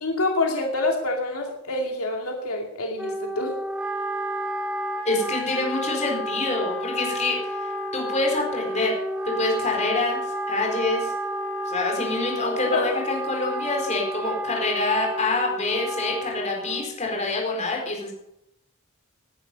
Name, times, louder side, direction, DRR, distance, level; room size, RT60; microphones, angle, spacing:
voice 1, 0.0-3.6 12.7-12.8, left 2 dB, 80° left, 1 dB, 2.5 m, -26 dB
Wind instrument woodwind instrument, 3.0-17.0, right 1 dB, 5° right, 1.3 m, -31 dB
voice 2, 5.0-8.9 9.2-10.2 10.5-11.1 11.7-18.1, left 2 dB, 30° left, 0 dB, 4.4 m, -26 dB
18.5 x 10.5 x 5.4 m, 0.81 s
head